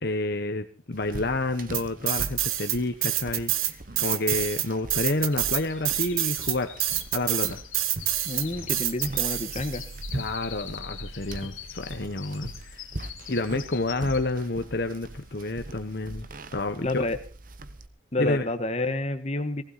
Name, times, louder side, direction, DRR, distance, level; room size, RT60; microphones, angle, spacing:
voice 1, 0.0-6.7 7.1-7.6 10.1-12.8 13.3-16.3 16.5-17.0 18.2-18.5, left 2 dB, 50° left, 8 dB, 1.1 m, -29 dB
sound 1, 0.9-17.9, right 2 dB, 45° right, 1.0 m, -41 dB
sound 2, 1.7-2.8 3.0-9.8, right 14 dB, 85° right, 1.2 m, -27 dB
Winter Wren, 2.8-2.9 3.1-14.5 14.9-15.2 15.7-15.8, left 11 dB, 85° left, 1.8 m, -44 dB
voice 2, 8.2-9.8 16.8-17.2 18.1-19.6, left 2 dB, 30° left, 8 dB, 1.3 m, -29 dB
19.0 x 16.0 x 4.1 m, 0.38 s
head